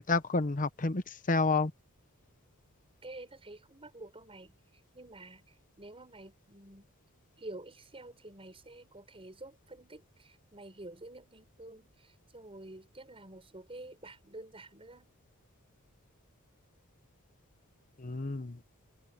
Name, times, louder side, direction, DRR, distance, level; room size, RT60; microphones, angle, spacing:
voice 1, 0.1-1.7 18.0-18.6, left 3 dB, 35° left, 1.0 m, -29 dB
voice 2, 3.0-5.4 5.8-6.9 7.4-15.1, right 2 dB, 25° right, 5.8 m, -49 dB
head